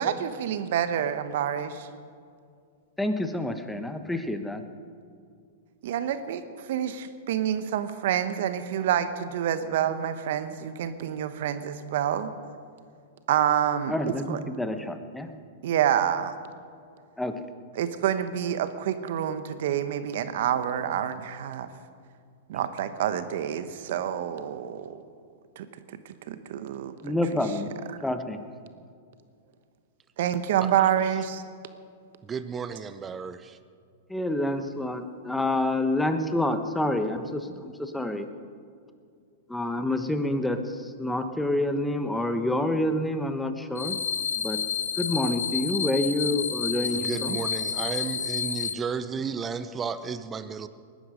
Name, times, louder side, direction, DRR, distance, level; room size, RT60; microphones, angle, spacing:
voice 1, 0.0-1.9 5.8-12.3 13.3-13.9 14.3-14.4 15.6-16.4 17.7-21.7 22.5-25.0 25.6-25.7 26.0-27.1 30.2-31.4, right 10 dB, 65° right, 11 dB, 1.1 m, -27 dB
voice 2, 3.0-4.6 13.9-15.3 17.2-17.4 27.0-27.7 28.0-28.5 34.1-38.3 39.5-44.0 44.4-44.6 45.0-47.4, left 1 dB, 5° left, 8 dB, 1.2 m, -28 dB
voice 3, 32.2-33.6 46.8-50.7, right 6 dB, 20° right, 12 dB, 0.8 m, -33 dB
sound 1, 43.8-48.7, left 7 dB, 85° left, 1.1 m, -30 dB
20.0 x 12.0 x 5.2 m, 2.3 s
hypercardioid pair, 115°, 0 cm